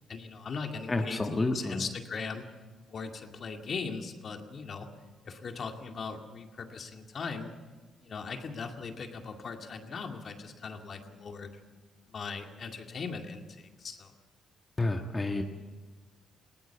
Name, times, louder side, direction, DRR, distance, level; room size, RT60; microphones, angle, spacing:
voice 1, 0.1-2.5 2.9-4.9 5.2-7.5 8.0-11.6 12.1-14.1, left 5 dB, 50° left, 4 dB, 2.2 m, -39 dB
voice 2, 0.9-1.9 14.8-15.4, left 2 dB, 25° left, 4 dB, 1.5 m, -29 dB
20.5 x 17.5 x 7.1 m, 1.3 s
cardioid pair, 90°, 0 cm